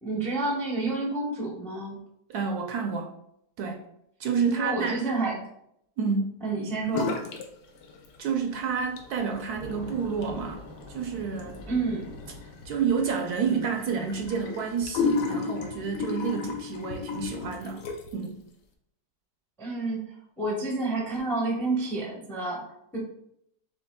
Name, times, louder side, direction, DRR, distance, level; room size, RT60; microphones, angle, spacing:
voice 1, 0.0-2.0 4.4-5.4 6.4-7.1 11.7-12.1 19.6-23.0, right 3 dB, ahead, -2 dB, 0.5 m, -29 dB
voice 2, 2.3-3.1 3.6-3.8 4.2-5.1 6.0-6.4 8.2-10.6 10.9-11.6 12.6-17.8 18.1-18.4, right 6 dB, 70° right, 3 dB, 1.0 m, -29 dB
sound 1, 6.9-7.5 7.8-8.4 8.8-18.3, left 5 dB, 80° left, 1.3 m, -34 dB
Thunder / Rain, 7.7-17.6, left 1 dB, 50° left, 1.1 m, -48 dB
6.8 x 3.0 x 2.2 m, 0.75 s
omnidirectional pair, 1.9 m